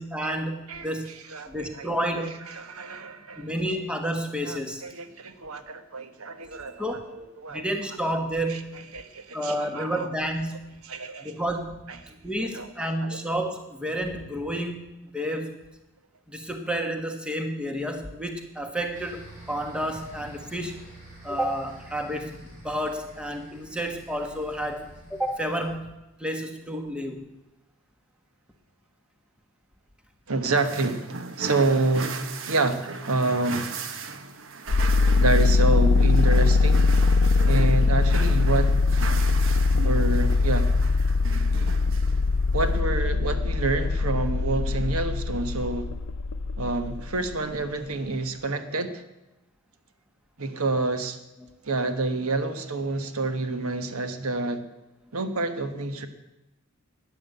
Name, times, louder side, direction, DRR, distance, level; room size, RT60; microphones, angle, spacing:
voice 1, 0.0-1.1 1.5-2.5 3.4-4.8 6.8-7.1 7.5-8.8 9.3-10.6 11.2-15.6 16.3-20.8 21.2-25.9 26.2-27.3 51.4-51.5, equal, 5° right, 4 dB, 1.4 m, -30 dB
voice 2, 0.7-1.9 2.5-3.5 4.4-6.8 7.1-7.6 8.5-8.6 8.9-10.1 10.8-11.3 11.9-12.1 12.5-12.7 13.0-13.2 30.3-33.8 35.2-36.9 37.4-38.8 39.8-40.7 42.5-45.9 46.6-49.0 50.4-51.2 51.6-54.6 55.1-56.1, right 3 dB, 80° right, 9 dB, 1.2 m, -28 dB
sound 1, 18.9-25.7, right 1 dB, 35° right, 5.1 m, -48 dB
sound 2, 30.6-42.8, right 4 dB, 60° right, 1.1 m, -38 dB
sound 3, 34.7-47.3, left 3 dB, 85° left, 0.5 m, -22 dB
12.5 x 9.8 x 7.9 m, 0.96 s
head